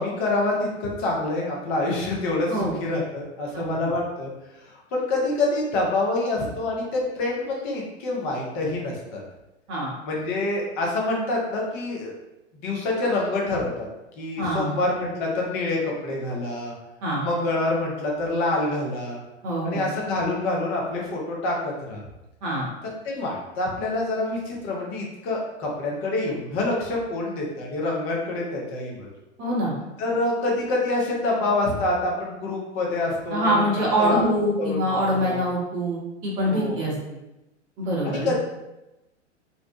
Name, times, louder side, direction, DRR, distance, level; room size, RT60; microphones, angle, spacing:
voice 1, 0.0-4.3 4.6-9.2 10.0-12.1 12.6-13.9 14.2-16.7 17.2-19.2 19.6-22.0 22.8-29.1 30.0-34.2 34.6-35.4 36.5-36.9 38.0-38.3, left 2 dB, 20° left, -2 dB, 0.4 m, -26 dB
voice 2, 14.4-14.7 17.0-17.2 19.4-19.8 22.4-22.7 29.4-29.7 33.3-36.9 37.8-38.3, equal, 30° right, -4 dB, 0.8 m, -24 dB
2.6 x 2.0 x 2.7 m, 0.96 s
figure-of-eight pair, 105°, 36 cm